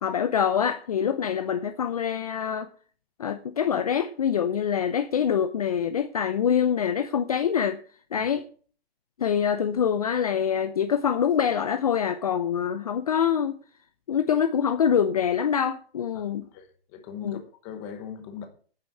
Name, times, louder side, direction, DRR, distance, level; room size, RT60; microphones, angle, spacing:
voice 1, 0.0-2.7 3.2-7.8 8.1-8.4 9.2-13.6 14.1-16.4 17.2-17.4, left 8 dB, 40° left, 0.7 m, -25 dB
voice 2, 16.5-18.5, left 7 dB, 15° left, 1.0 m, -39 dB
9.5 x 7.9 x 7.8 m
hypercardioid pair, 175°, 30 cm